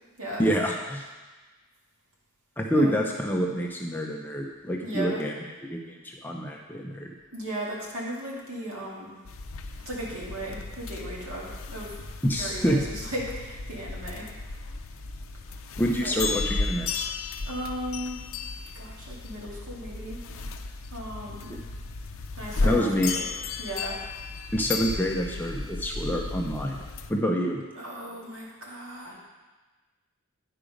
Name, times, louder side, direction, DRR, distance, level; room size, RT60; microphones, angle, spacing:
voice 1, 0.4-1.1 2.6-5.3 5.7-7.1 12.2-12.8 15.8-16.9 22.6-23.1 24.5-26.8 27.1-27.6, equal, 10° left, 0 dB, 0.5 m, -27 dB
voice 2, 4.8-5.2 7.3-9.1 9.9-11.9 12.4-14.3 16.0-16.2 17.5-18.2 18.7-20.2 20.9-21.6 22.4-22.9 23.1-23.3 23.6-24.0 27.8-29.2, right 1 dB, 65° right, -4 dB, 2.2 m, -36 dB
sound 1, 9.3-27.1, left 3 dB, 60° left, 0.5 m, -34 dB
10.5 x 4.9 x 5.0 m, 1.3 s
head